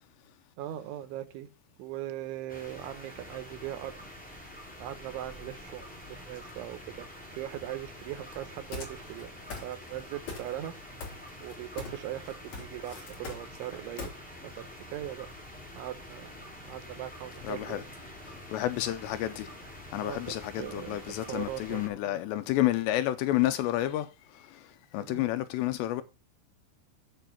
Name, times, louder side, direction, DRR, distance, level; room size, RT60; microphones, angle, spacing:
voice 1, 0.6-1.5 1.8-4.0 4.3-4.5 4.8-9.3 9.6-10.7 11.4-14.2 14.7-15.3 15.8-17.9 19.9-22.2 25.0-25.3, right 13 dB, 85° right, 3.3 m, -40 dB
sound 1, 2.5-21.9, left 1 dB, ahead, 2.8 m, -47 dB
sound 2, 8.7-9.2 9.5-10.0 10.3-10.7 11.0-12.0 12.3-14.1, left 4 dB, 45° left, 3.5 m, -40 dB
voice 2, 17.4-17.8 18.2-19.5 19.9-26.0, left 14 dB, 80° left, 2.6 m, -30 dB
9.1 x 7.2 x 5.7 m
omnidirectional pair, 5.3 m